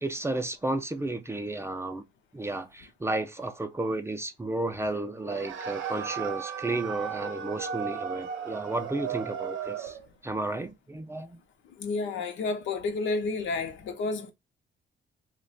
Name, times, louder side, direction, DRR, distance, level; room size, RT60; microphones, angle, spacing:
voice 1, 0.0-2.0 2.3-10.0 10.2-11.4, right 2 dB, 15° right, 0.4 m, -32 dB
sound 1, 5.2-10.1, right 8 dB, 80° right, 0.6 m, -35 dB
voice 2, 11.8-14.3, left 3 dB, 75° left, 0.6 m, -30 dB
2.4 x 2.2 x 3.9 m
cardioid pair, 90°, 20 cm